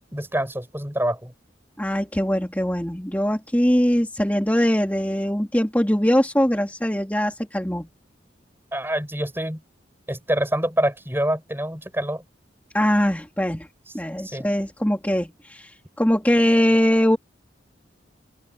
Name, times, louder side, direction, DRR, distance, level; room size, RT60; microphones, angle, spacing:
voice 1, 0.1-1.3 8.7-9.6 10.1-12.2 14.3-14.4, right 1 dB, 10° right, 6.5 m, -26 dB
voice 2, 1.8-7.9 12.7-13.7 13.9-15.7 16.0-17.2, equal, 10° left, 2.8 m, -21 dB
open air
head